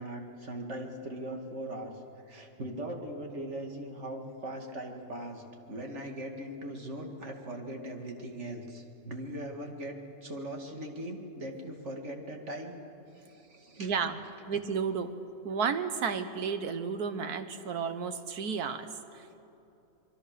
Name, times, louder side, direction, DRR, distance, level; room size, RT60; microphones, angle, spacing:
voice 1, 0.0-12.8 13.1-13.9, right 1 dB, 50° right, 2 dB, 2.5 m, -40 dB
voice 2, 13.8-14.2 14.5-15.1 15.4-19.4, right 6 dB, 85° right, 9 dB, 1.7 m, -32 dB
26.0 x 22.5 x 6.7 m, 2.9 s
omnidirectional pair, 1.6 m